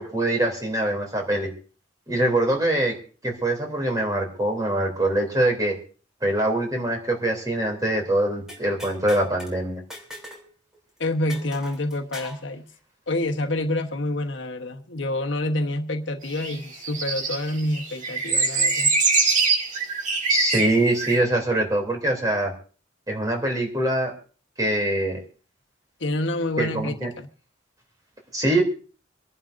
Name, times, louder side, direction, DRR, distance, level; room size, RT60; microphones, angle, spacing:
voice 1, 0.0-1.5 2.1-2.9 3.2-5.7 6.2-9.8 20.3-22.5 23.1-24.1 24.6-25.2 26.6-27.1 28.3-28.6, right 1 dB, 20° right, 1 dB, 2.9 m, -23 dB
sound 1, 8.5-9.5 9.9-10.5 10.7-10.8 11.3-12.4, equal, 5° right, 3.1 m, -40 dB
voice 2, 11.0-12.6 13.1-18.9 26.0-27.3, left 1 dB, 65° left, 4 dB, 1.1 m, -27 dB
sound 2, 16.4-21.2, right 4 dB, 40° right, 1.8 m, -23 dB
26.0 x 11.0 x 2.6 m, 0.38 s
head